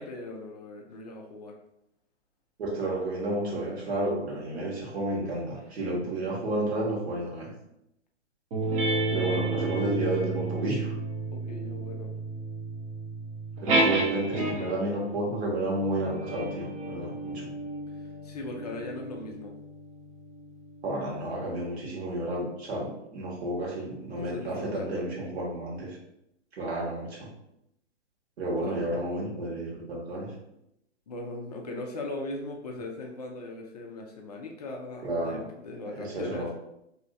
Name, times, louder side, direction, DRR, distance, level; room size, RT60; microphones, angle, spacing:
voice 1, 0.0-1.6 11.2-12.1 18.2-19.5 24.1-25.1 28.6-28.8 31.1-36.5, left 2 dB, 35° left, 1 dB, 0.4 m, -39 dB
voice 2, 2.6-7.5 9.1-11.0 13.6-17.5 20.8-26.0 26.5-27.3 28.4-30.3 35.0-35.5 35.8-36.5, right 1 dB, 60° right, -2 dB, 1.3 m, -31 dB
sound 1, 8.5-14.9 15.7-20.6, right 2 dB, 30° right, 0.7 m, -31 dB
3.0 x 2.7 x 2.5 m, 0.81 s
hypercardioid pair, 130°, 36 cm